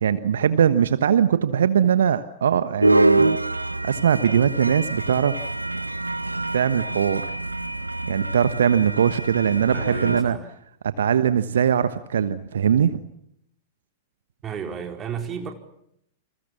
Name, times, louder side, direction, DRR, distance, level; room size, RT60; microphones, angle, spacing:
voice 1, 0.0-3.4 3.8-5.5 6.5-7.2 8.1-10.4 10.8-13.0, right 8 dB, 65° right, 13 dB, 1.2 m, -21 dB
sound 1, 2.8-10.2, right 2 dB, 85° right, 1.1 m, -25 dB
voice 2, 9.7-10.5 14.4-15.5, right 7 dB, 25° right, 4 dB, 4.2 m, -33 dB
29.0 x 27.0 x 7.4 m, 0.75 s
figure-of-eight pair, 95°, 0 cm